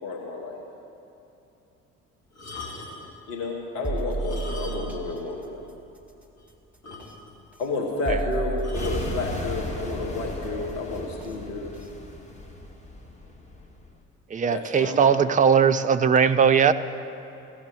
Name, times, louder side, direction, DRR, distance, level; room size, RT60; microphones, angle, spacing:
voice 1, 0.0-0.6 3.3-5.6 7.6-11.7 14.5-15.3, left 3 dB, 70° left, -1 dB, 1.5 m, -31 dB
sound 1, 2.3-3.2 4.1-5.1 5.4-5.5 6.0-6.1 6.4-6.5 6.8-7.5 8.6-9.1 9.9-10.2, left 3 dB, 40° left, 2.3 m, -41 dB
sound 2, 3.8-5.1 7.0-7.1 8.0-9.4 11.2-11.3 11.8-11.9, right 4 dB, 5° right, 1.4 m, -31 dB
sound 3, 8.7-14.0, left 1 dB, 15° left, 1.8 m, -36 dB
voice 2, 14.3-16.7, right 7 dB, 20° right, 9 dB, 0.5 m, -19 dB
15.0 x 7.1 x 8.8 m, 2.8 s
figure-of-eight pair, 50°, 39 cm